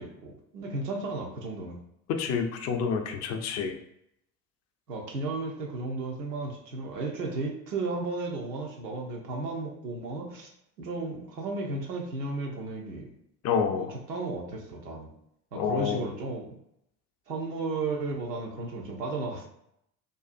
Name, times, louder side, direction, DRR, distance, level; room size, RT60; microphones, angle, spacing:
voice 1, 0.0-1.8 4.9-10.5 10.8-13.1 13.8-15.1 15.5-16.5 17.3-19.4, right 3 dB, 90° right, -1 dB, 0.6 m, -34 dB
voice 2, 2.1-3.8 13.4-13.9 15.5-16.1, left 6 dB, 35° left, 5 dB, 0.4 m, -28 dB
2.5 x 2.3 x 2.4 m, 0.76 s
hypercardioid pair, 60°, 47 cm